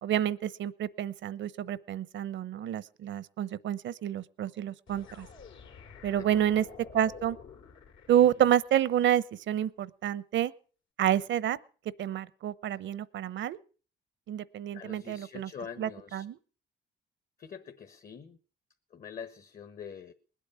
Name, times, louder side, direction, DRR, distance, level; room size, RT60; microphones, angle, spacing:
voice 1, 0.0-5.3 6.0-6.6 6.9-7.4 8.1-10.5 11.0-11.6 12.0-13.6 14.3-15.5 15.8-16.4, right 11 dB, 70° right, 19 dB, 0.9 m, -29 dB
sound 1, 4.9-8.8, left 5 dB, 75° left, 3.0 m, -50 dB
voice 2, 6.1-6.5 14.7-16.2 17.4-18.4 18.9-20.1, left 7 dB, 45° left, 8 dB, 1.3 m, -45 dB
20.5 x 8.6 x 6.9 m, 0.41 s
cardioid pair, 90°, 20 cm